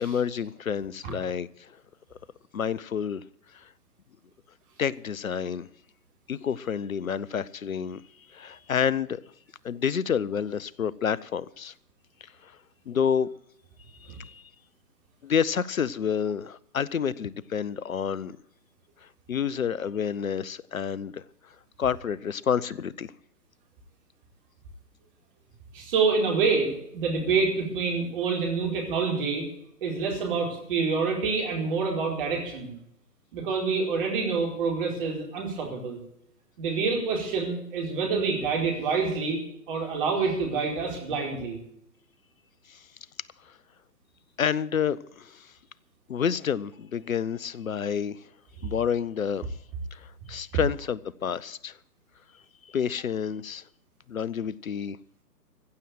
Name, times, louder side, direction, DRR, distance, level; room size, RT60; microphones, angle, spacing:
voice 1, 0.0-1.7 2.5-3.2 3.5-3.7 4.8-5.7 6.3-8.0 8.3-9.2 9.6-11.7 12.4-12.5 12.9-13.3 14.0-14.4 15.2-18.3 19.3-21.2 21.8-23.1 42.7-42.8 44.4-45.5 46.1-48.2 48.6-49.5 49.9-51.7 52.7-53.6 54.1-55.0, left 7 dB, 55° left, 0.7 m, -29 dB
voice 2, 25.7-29.4 29.8-32.7 33.3-36.0 36.6-39.4 39.7-41.6, right 4 dB, 35° right, 4.6 m, -27 dB
15.5 x 7.6 x 9.3 m
figure-of-eight pair, 130°, 48 cm